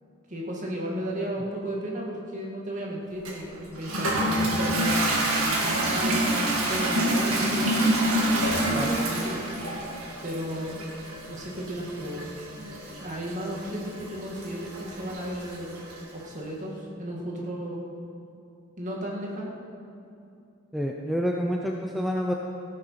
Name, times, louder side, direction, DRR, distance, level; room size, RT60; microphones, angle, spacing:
voice 1, 0.3-8.0 8.5-9.7 10.2-10.8 11.3-12.2 12.6-17.8 18.8-19.5, right 1 dB, 35° right, -2 dB, 2.0 m, -34 dB
Toilet flush, 3.3-16.0, right 1 dB, 80° right, 2.1 m, -27 dB
voice 2, 20.7-22.3, equal, ahead, 0 dB, 0.5 m, -28 dB
15.0 x 8.7 x 5.8 m, 2.7 s
head